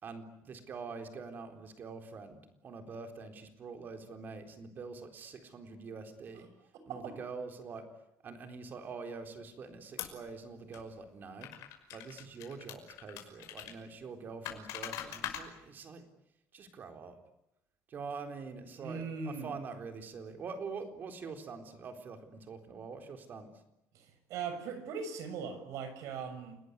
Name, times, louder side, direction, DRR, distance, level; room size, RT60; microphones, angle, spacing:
voice 1, 0.0-6.5 6.9-7.9 8.2-11.5 11.9-16.0 16.5-17.2 17.9-23.5, right 4 dB, 35° right, 6 dB, 3.9 m, -45 dB
sound 1, 10.0-10.3 10.7-10.8 11.4-13.7 14.5-15.5, left 12 dB, 85° left, 5.8 m, -42 dB
voice 2, 18.8-19.5 23.9-26.6, right 5 dB, 70° right, 9 dB, 6.5 m, -40 dB
29.0 x 20.0 x 9.6 m, 0.88 s
cardioid pair, 165°, 5 cm